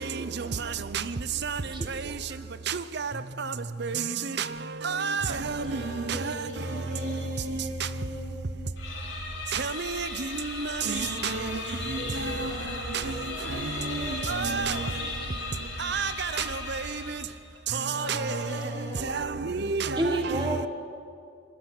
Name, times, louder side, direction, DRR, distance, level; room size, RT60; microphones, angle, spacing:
voice 1, 0.2-0.7 1.6-2.2 20.0-20.7, right 1 dB, 25° right, 1.6 m, -31 dB
voice 2, 2.7-3.1 3.8-4.0 4.8-5.8 6.1-6.2 9.5-10.1 10.6-11.0 13.9-14.0 14.3-14.8 15.8-16.3 16.7-16.8 17.7-18.4 19.1-20.4, right 5 dB, 55° right, 0.8 m, -29 dB
voice 3, 5.6-8.8 11.0-15.8 17.9-19.4, left 1 dB, 35° left, 7.9 m, -40 dB
sound 1, 8.8-17.5, left 3 dB, 65° left, 7.6 m, -37 dB
25.0 x 21.0 x 6.1 m
head